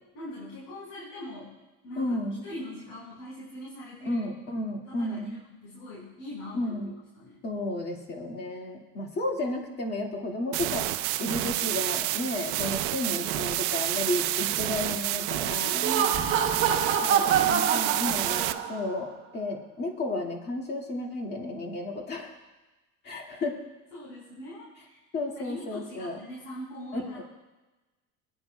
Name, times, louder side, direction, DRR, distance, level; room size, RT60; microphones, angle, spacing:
voice 1, 0.1-1.5 1.8-2.2 2.4-4.3 4.9-7.4 12.5-13.3 15.8-16.5 18.5-18.6 23.9-25.0 25.4-27.2, equal, 85° left, -7 dB, 4.5 m, -42 dB
voice 2, 2.0-2.4 4.1-5.4 6.5-6.9 7.4-10.9 11.2-15.9 17.0-22.3 23.0-23.6 25.1-26.2 26.9-27.2, left 2 dB, 30° left, 0 dB, 1.9 m, -32 dB
sound 1, 10.5-18.5, right 15 dB, 75° right, 0.6 m, -29 dB
Laughter, 15.7-18.9, right 7 dB, 35° right, 1.0 m, -26 dB
26.0 x 9.9 x 2.2 m, 1.1 s
cardioid pair, 160°, 35 cm